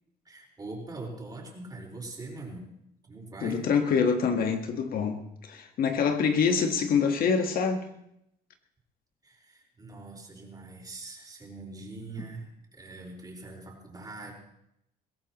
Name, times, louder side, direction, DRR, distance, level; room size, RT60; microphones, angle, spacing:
voice 1, 0.2-2.7 3.0-3.7 9.2-14.3, right 2 dB, 25° right, -1 dB, 4.8 m, -42 dB
voice 2, 3.4-7.9, left 6 dB, 60° left, 5 dB, 1.5 m, -26 dB
22.5 x 16.5 x 3.1 m, 0.79 s
cardioid pair, 110°, 17 cm